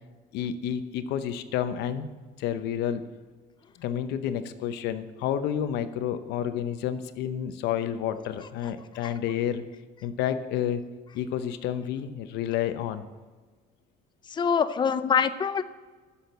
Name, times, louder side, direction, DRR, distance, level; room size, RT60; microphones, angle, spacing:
voice 1, 0.3-2.1 2.4-3.0 3.8-9.6 10.0-10.8 11.1-13.0, left 9 dB, 85° left, 11 dB, 0.8 m, -30 dB
voice 2, 14.3-15.6, left 6 dB, 25° left, 12 dB, 0.5 m, -24 dB
10.5 x 7.2 x 7.8 m, 1.4 s
cardioid pair, 110°, 17 cm